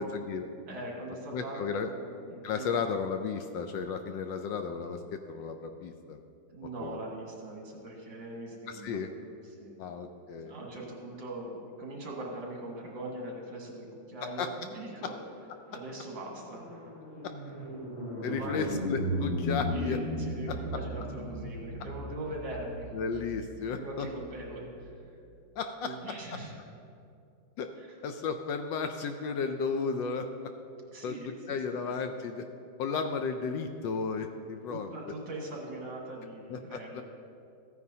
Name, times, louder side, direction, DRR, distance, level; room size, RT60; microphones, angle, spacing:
voice 1, 0.0-0.5 1.3-1.9 2.4-6.2 6.8-7.0 8.7-9.1 9.8-10.5 14.2-14.5 18.2-20.0 22.9-24.1 25.6-26.4 27.6-27.7 28.0-30.3 31.0-32.5 32.8-34.9 36.5-37.0, left 5 dB, 75° left, 6 dB, 1.1 m, -34 dB
voice 2, 0.7-2.9 6.5-9.0 9.4-9.8 10.4-15.1 15.7-16.7 18.2-19.0 19.6-22.9 23.7-24.9 25.8-26.6 27.8-28.0 30.9-31.6 34.7-37.0, right 1 dB, 65° right, -2 dB, 2.5 m, -41 dB
sound 1, 15.3-24.9, left 1 dB, 30° left, 2.3 m, -37 dB
15.0 x 9.5 x 2.8 m, 2.5 s
omnidirectional pair, 2.2 m